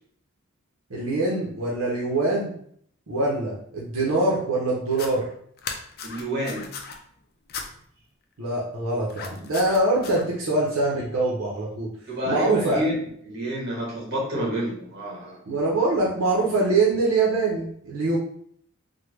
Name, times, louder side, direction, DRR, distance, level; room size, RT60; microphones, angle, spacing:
voice 1, 0.9-2.5 3.1-5.2 8.4-11.9 12.3-12.8 15.5-18.2, right 2 dB, 85° right, -4 dB, 0.8 m, -24 dB
sound 1, 4.9-5.1 5.6-7.0 7.5-7.7 9.1-10.2, left 5 dB, 45° left, 0.4 m, -36 dB
voice 2, 6.0-6.7 12.1-12.9 13.2-15.4, equal, 50° right, -5 dB, 1.3 m, -29 dB
3.4 x 2.2 x 3.1 m, 0.64 s
head